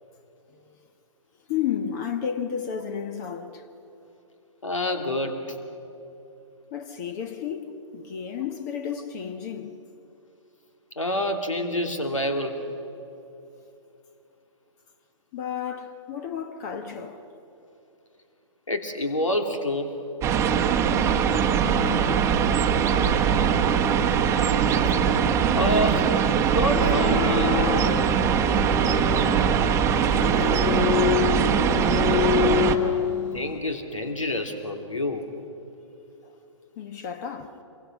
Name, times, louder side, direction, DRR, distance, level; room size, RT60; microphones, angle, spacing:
voice 1, 0.5-0.9 1.5-3.7 6.7-9.8 15.3-17.3 21.6-22.3 30.0-31.2 36.2-36.4 36.8-37.6, left 8 dB, 35° left, 1.2 m, -33 dB
voice 2, 4.6-5.4 11.0-12.5 15.7-15.8 18.7-19.9 25.5-26.1 26.5-27.5 33.3-35.3, left 1 dB, 80° left, 2.9 m, -27 dB
sound 1, 20.2-32.8, right 7 dB, 15° right, 1.1 m, -22 dB
sound 2, 26.6-33.6, left 10 dB, 15° left, 0.6 m, -27 dB
27.0 x 23.0 x 6.2 m
figure-of-eight pair, 125°, 16 cm